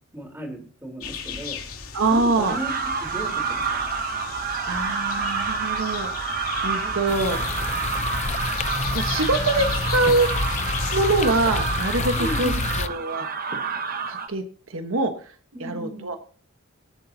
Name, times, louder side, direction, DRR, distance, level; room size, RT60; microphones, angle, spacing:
voice 1, 0.1-1.6 2.1-2.7 3.0-3.8 12.2-12.7 15.5-16.1, right 1 dB, 10° right, 3 dB, 3.8 m, -34 dB
sound 1, 1.0-12.8, left 6 dB, 85° left, 2.8 m, -37 dB
voice 2, 1.9-2.6 4.6-7.4 8.9-10.4 10.9-13.3 14.1-16.2, right 2 dB, 70° right, 7 dB, 1.2 m, -24 dB
sound 2, 2.4-14.3, right 5 dB, 40° right, 1.1 m, -29 dB
sound 3, 7.1-12.9, left 3 dB, 30° left, 0.6 m, -28 dB
24.5 x 8.4 x 2.8 m, 0.42 s
head